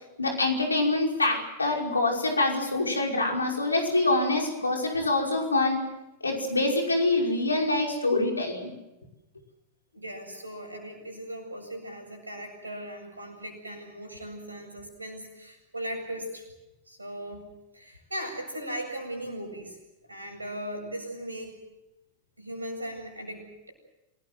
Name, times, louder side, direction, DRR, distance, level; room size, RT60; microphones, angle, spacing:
voice 1, 0.2-5.8 6.2-8.7, left 2 dB, 80° left, 1 dB, 5.5 m, -25 dB
voice 2, 9.9-16.5 16.9-19.8 20.1-21.6 22.4-23.7, equal, 80° right, 4 dB, 7.9 m, -38 dB
27.5 x 20.0 x 7.9 m, 0.94 s
figure-of-eight pair, 90°, 0 cm